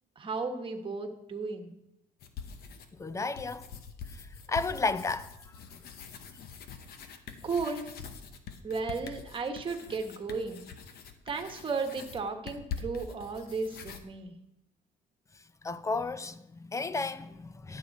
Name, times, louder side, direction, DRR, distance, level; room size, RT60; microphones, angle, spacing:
voice 1, 0.2-1.7 7.4-7.9 8.6-10.6 11.3-14.3, right 4 dB, 30° right, 1.3 m, -34 dB
sound 1, 2.2-3.0 3.4-14.0, left 6 dB, 65° left, 1.0 m, -44 dB
voice 2, 3.0-3.7 4.1-5.3 15.6-17.8, left 3 dB, 20° left, 0.5 m, -33 dB
10.5 x 6.9 x 4.1 m
cardioid pair, 110°, 17 cm